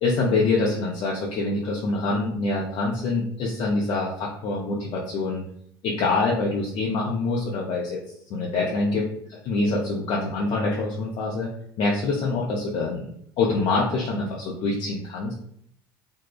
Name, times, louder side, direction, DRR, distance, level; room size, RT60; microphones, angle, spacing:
voice 1, 0.0-5.4 5.8-8.0 8.3-11.5 11.8-15.3, left 3 dB, 45° left, -3 dB, 0.5 m, -25 dB
2.6 x 2.1 x 2.3 m, 0.67 s
hypercardioid pair, 70°, 12 cm